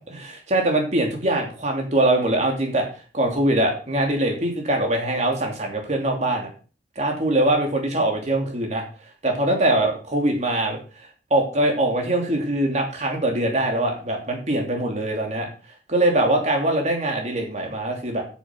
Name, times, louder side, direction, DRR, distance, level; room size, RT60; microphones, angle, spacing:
voice 1, 0.1-2.9 3.1-6.5 7.0-8.8 9.2-10.8 11.3-15.5 15.9-18.2, right 1 dB, 40° right, 2 dB, 2.9 m, -22 dB
9.4 x 7.4 x 6.1 m, 0.37 s
head